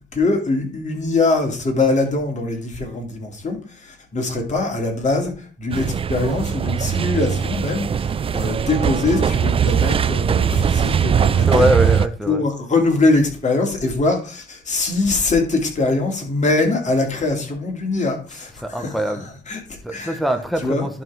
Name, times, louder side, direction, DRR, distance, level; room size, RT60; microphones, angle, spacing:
voice 1, 0.1-11.7 12.3-18.5 18.8-19.0 19.5-20.2 20.6-20.8, left 3 dB, 35° left, 2.5 m, -22 dB
sound 1, 5.7-12.1, right 8 dB, 30° right, 0.3 m, -20 dB
voice 2, 11.3-12.4 18.3-19.3 19.8-21.0, equal, ahead, 1.2 m, -23 dB
11.0 x 3.8 x 4.8 m
cardioid pair, 90°, 20 cm